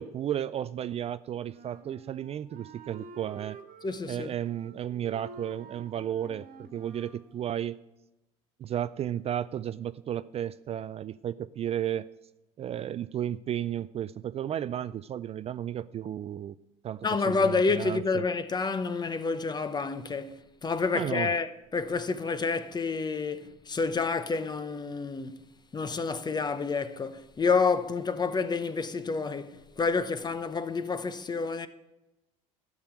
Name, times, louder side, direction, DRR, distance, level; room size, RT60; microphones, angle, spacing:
voice 1, 0.0-3.6 4.1-7.8 8.6-12.1 12.6-16.5 16.8-18.2 20.9-21.3, right 10 dB, 40° right, 0.4 m, -33 dB
Wind instrument woodwind instrument, 1.4-7.3, right 5 dB, 55° right, 1.5 m, -48 dB
voice 2, 3.8-4.3 17.0-31.7, left 4 dB, 25° left, 0.9 m, -29 dB
12.0 x 6.3 x 8.2 m
supercardioid pair, 80°, 17 cm